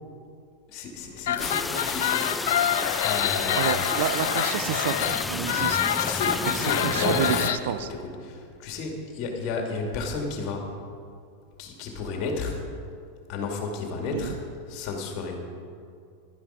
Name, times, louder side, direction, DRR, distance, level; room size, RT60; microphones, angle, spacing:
voice 1, 0.7-2.5 3.0-4.0 6.0-7.3 7.6-7.7 8.0-10.7 11.6-12.6 13.3-14.4 14.7-15.4, left 4 dB, 50° left, 1 dB, 2.6 m, -32 dB
sound 1, 1.2-7.6, left 10 dB, 65° left, 0.6 m, -26 dB
sound 2, 1.4-7.5, left 3 dB, 10° left, 0.4 m, -32 dB
voice 2, 3.5-5.8 6.5-7.9 14.1-14.4, right 10 dB, 65° right, 11 dB, 0.7 m, -30 dB
11.5 x 11.0 x 5.1 m, 2.3 s
hypercardioid pair, 95°, 0 cm